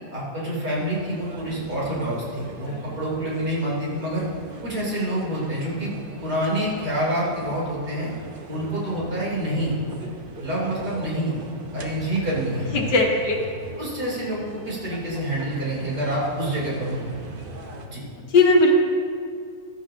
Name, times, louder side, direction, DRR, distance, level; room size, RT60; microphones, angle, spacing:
voice 1, 0.1-4.3 4.6-5.9 6.2-8.1 8.5-9.8 10.4-11.4 11.7-12.7 13.8-17.1 17.9-18.0, right 1 dB, 70° right, -6 dB, 4.0 m, -27 dB
sound 1, 0.7-17.9, right 2 dB, 40° right, 0.9 m, -40 dB
voice 2, 2.7-3.0 12.7-13.4 18.3-18.7, left 3 dB, 80° left, 0 dB, 2.1 m, -19 dB
15.0 x 12.5 x 2.8 m, 2.2 s
omnidirectional pair, 1.8 m